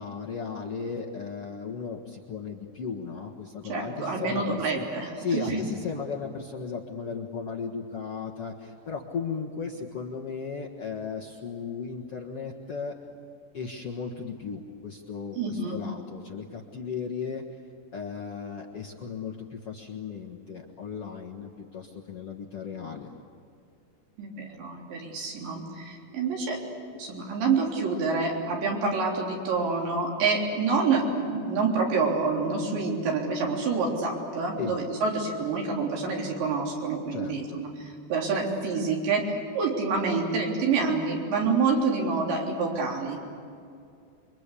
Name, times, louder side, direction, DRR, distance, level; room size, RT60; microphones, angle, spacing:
voice 1, 0.0-4.8 5.2-12.9 13.5-17.4 17.9-23.1 34.6-34.8 37.1-37.7, left 5 dB, 55° left, -2 dB, 1.6 m, -36 dB
voice 2, 3.7-5.6 15.4-15.8 24.2-26.6 27.0-43.2, right 4 dB, 85° right, -1 dB, 6.0 m, -27 dB
28.5 x 23.5 x 8.4 m, 2.4 s
omnidirectional pair, 5.0 m